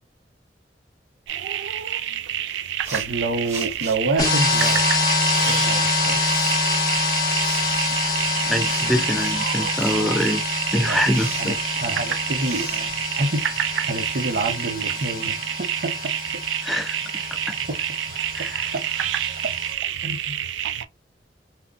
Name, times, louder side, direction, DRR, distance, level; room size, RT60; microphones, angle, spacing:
sound 1, 1.3-20.9, right 10 dB, 85° right, 0.3 m, -28 dB
sound 2, 2.8-13.8, right 2 dB, 40° right, 1.1 m, -39 dB
voice 1, 2.9-4.8 5.5-6.2 10.8-11.1 11.3-13.5 13.9-16.1 17.7-17.8 18.4-18.5 18.7-18.8 20.0-20.4, right 2 dB, 60° right, 0.7 m, -28 dB
sound 3, 4.2-19.7, left 3 dB, 20° left, 1.0 m, -26 dB
voice 2, 8.5-10.4 10.7-11.6 16.6-17.0 17.5-17.6 18.3-18.7, equal, ahead, 0.3 m, -24 dB
3.7 x 2.1 x 2.4 m
head